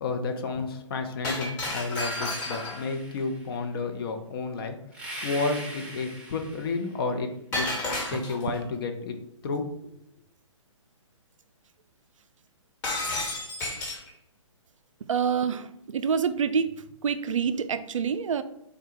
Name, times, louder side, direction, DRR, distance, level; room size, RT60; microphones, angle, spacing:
voice 1, 0.0-4.8 5.2-7.7 8.1-9.2 9.4-9.7, left 4 dB, 45° left, 5 dB, 0.6 m, -31 dB
Shatter, 1.2-2.9 7.5-8.6 12.8-14.1, left 2 dB, 20° left, 1.2 m, -31 dB
sound 1, 1.9-3.5 4.9-7.0, right 1 dB, 5° right, 0.7 m, -41 dB
voice 2, 15.1-16.7 17.0-18.4, right 6 dB, 75° right, 11 dB, 0.4 m, -26 dB
3.8 x 2.2 x 4.3 m, 0.77 s
hypercardioid pair, 135°, 17 cm